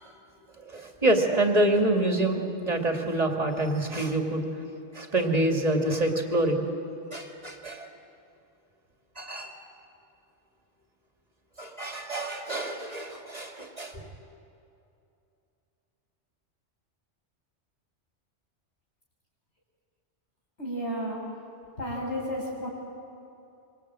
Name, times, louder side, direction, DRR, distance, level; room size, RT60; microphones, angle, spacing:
voice 1, 0.6-4.5 4.9-6.6 7.1-7.9 9.2-9.5 11.6-14.0, right 1 dB, 35° right, 3 dB, 2.6 m, -26 dB
voice 2, 20.6-21.2 21.8-22.7, equal, 70° left, -2 dB, 7.2 m, -32 dB
25.5 x 25.5 x 9.0 m, 2.7 s
omnidirectional pair, 1.2 m